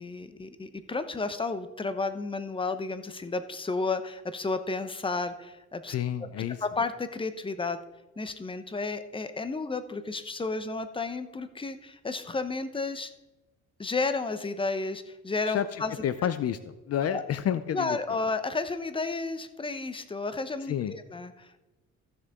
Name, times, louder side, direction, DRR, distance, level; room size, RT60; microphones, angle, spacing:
voice 1, 0.0-5.9 6.6-7.8 8.2-13.1 13.8-15.9 16.2-16.3 17.1-17.2 17.7-21.6, left 3 dB, 15° left, 10 dB, 0.8 m, -32 dB
voice 2, 5.9-6.6 15.5-18.0 20.7-20.9, left 9 dB, 55° left, 13 dB, 0.5 m, -30 dB
14.5 x 6.7 x 3.6 m, 1.0 s
cardioid pair, 90°, 30 cm